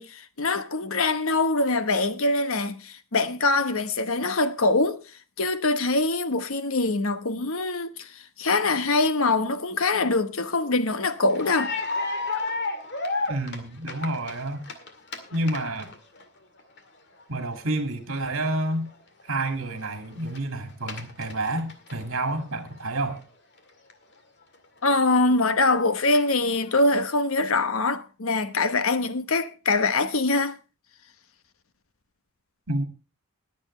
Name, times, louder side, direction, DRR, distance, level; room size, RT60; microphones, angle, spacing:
voice 1, 0.0-5.0 5.4-11.7 24.8-30.6, left 3 dB, 70° left, 1.1 m, -24 dB
sound 1, 11.2-16.2 16.6-16.8 17.2-17.3 17.8-17.9 18.2-18.3 18.6-18.9 19.2-19.3 19.5-20.4 20.7-22.4 22.7-22.8 23.0-23.1 23.9-24.0 24.5-24.6 25.2-25.3 25.6-26.8, left 3 dB, 50° left, 2.1 m, -32 dB
voice 2, 13.3-14.7 15.3-15.9 17.3-18.9 19.3-23.2 32.7-32.8, right 2 dB, 65° right, 2.3 m, -29 dB
21.0 x 8.1 x 3.2 m
head